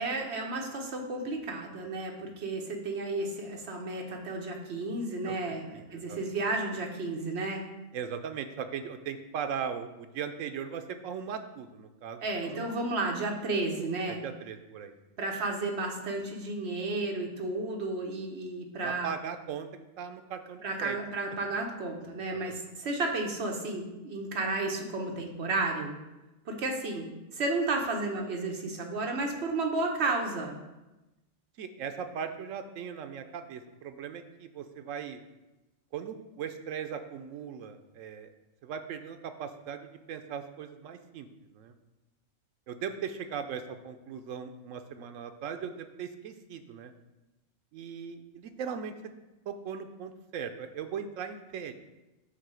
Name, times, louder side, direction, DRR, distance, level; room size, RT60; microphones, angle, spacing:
voice 1, 0.0-7.6 12.2-14.2 15.2-19.1 20.6-25.9 26.5-27.0 27.3-30.6, right 2 dB, 55° right, 2 dB, 1.2 m, -32 dB
voice 2, 5.3-6.2 7.9-12.7 14.1-14.9 18.8-19.7 20.0-21.0 22.3-22.7 31.6-35.2 35.9-38.3 38.6-41.3 41.5-41.7 42.7-46.9 47.7-48.9 49.5-51.7, right 7 dB, 75° right, 8 dB, 1.0 m, -39 dB
8.2 x 2.8 x 6.1 m, 1.0 s
omnidirectional pair, 1.4 m